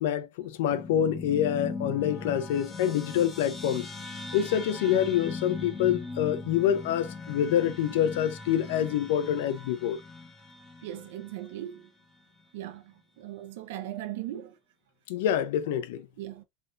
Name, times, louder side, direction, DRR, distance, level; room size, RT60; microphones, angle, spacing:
voice 1, 0.0-3.9 4.3-10.0 15.1-16.0, left 10 dB, 85° left, 0.7 m, -26 dB
sound 1, 0.7-11.5, left 3 dB, 15° left, 1.3 m, -39 dB
voice 2, 10.8-11.9 12.5-14.5 16.2-16.4, right 13 dB, 85° right, 0.7 m, -38 dB
3.8 x 3.5 x 2.5 m
supercardioid pair, 155°, 0 cm